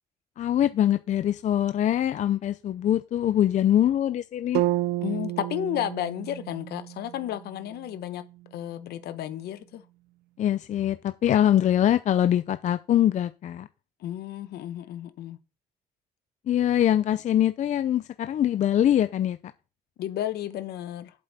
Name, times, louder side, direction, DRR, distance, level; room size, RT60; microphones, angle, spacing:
voice 1, 0.4-4.6 10.4-13.7 16.5-19.4, left 11 dB, 45° left, 0.5 m, -23 dB
sound 1, 4.5-8.6, right 16 dB, 75° right, 0.5 m, -31 dB
voice 2, 5.0-8.2 8.5-9.8 14.0-15.4 20.0-21.1, left 12 dB, 70° left, 1.1 m, -32 dB
7.9 x 7.6 x 4.2 m
cardioid pair, 110°, 17 cm